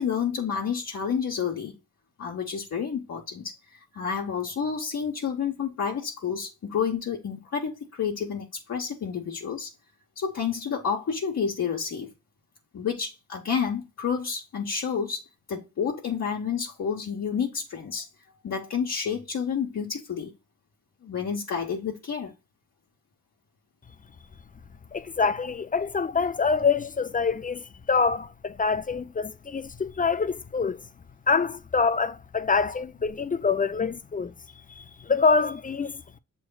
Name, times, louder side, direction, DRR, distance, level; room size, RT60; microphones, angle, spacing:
voice 1, 0.0-1.8 2.2-3.5 3.9-9.7 10.2-12.1 12.7-15.2 15.5-18.1 18.4-20.3 21.0-22.3, left 6 dB, 60° left, 1.0 m, -29 dB
voice 2, 24.9-30.8 31.3-34.3 34.8-36.0, left 5 dB, 25° left, 0.3 m, -25 dB
7.5 x 3.1 x 2.2 m
cardioid pair, 85°, 31 cm